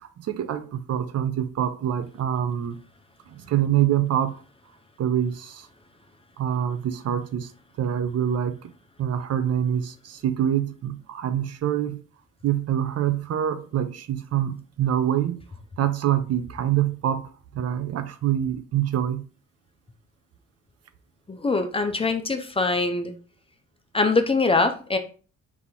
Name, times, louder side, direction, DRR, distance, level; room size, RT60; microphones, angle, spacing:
voice 1, 0.0-2.8 3.3-4.4 5.0-5.7 6.4-7.5 7.8-8.7 9.0-12.0 12.4-15.4 15.8-19.3, right 10 dB, 55° right, 0.5 m, -25 dB
voice 2, 21.3-23.1 23.9-25.0, left 3 dB, 20° left, 0.5 m, -23 dB
4.1 x 2.9 x 3.5 m
cardioid pair, 90°, 30 cm